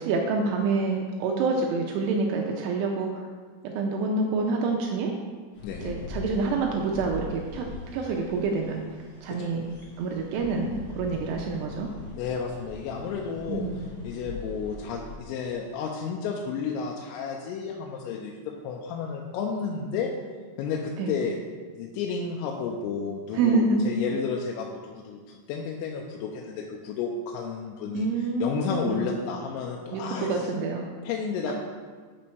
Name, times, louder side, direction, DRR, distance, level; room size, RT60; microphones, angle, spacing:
voice 1, 0.0-3.2 3.6-5.1 5.7-7.7 7.9-8.8 9.2-9.7 10.0-11.9 13.5-13.9 21.0-21.1 23.3-23.9 27.9-29.1 29.9-30.9 31.5-31.6, right 3 dB, 80° right, 1 dB, 2.9 m, -27 dB
sound 1, 5.5-15.2, left 3 dB, 65° left, 1.9 m, -42 dB
voice 2, 5.6-5.9 9.3-9.5 12.2-20.1 20.6-21.4 21.7-30.4 31.0-31.5, left 5 dB, 90° left, 0 dB, 3.3 m, -32 dB
8.6 x 6.3 x 4.5 m, 1.5 s
omnidirectional pair, 5.9 m